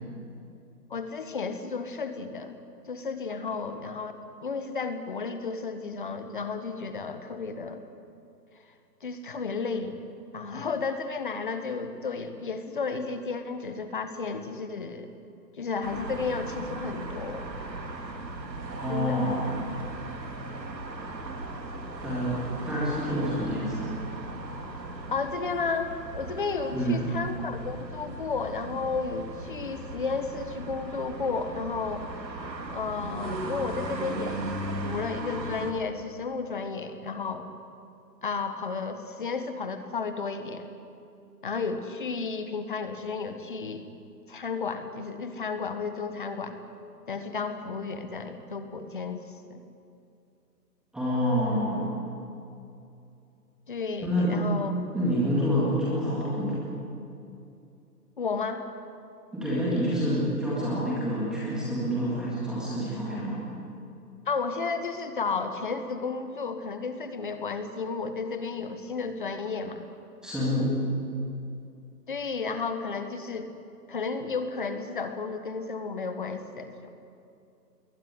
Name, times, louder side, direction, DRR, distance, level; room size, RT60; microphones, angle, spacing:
voice 1, 0.9-2.6 2.9-7.8 9.0-10.0 10.3-15.1 15.6-17.5 18.9-19.2 25.1-32.1 32.7-34.5 34.8-37.5 38.2-40.7 41.4-43.8 44.3-46.6 47.1-49.2 49.5-49.6 53.7-54.7 58.2-58.6 64.3-69.9 72.1-73.5 73.9-76.7, left 4 dB, 30° left, 9 dB, 1.4 m, -33 dB
sound 1, 15.8-35.7, right 2 dB, 85° right, 3.8 m, -37 dB
voice 2, 18.8-19.5 22.0-22.4 22.7-23.9 26.7-27.0 50.9-51.9 54.0-54.4 54.9-56.7 59.3-63.5 70.2-70.7, equal, ahead, -8 dB, 1.9 m, -27 dB
21.0 x 19.5 x 9.7 m, 2.6 s
hypercardioid pair, 165°, 50 cm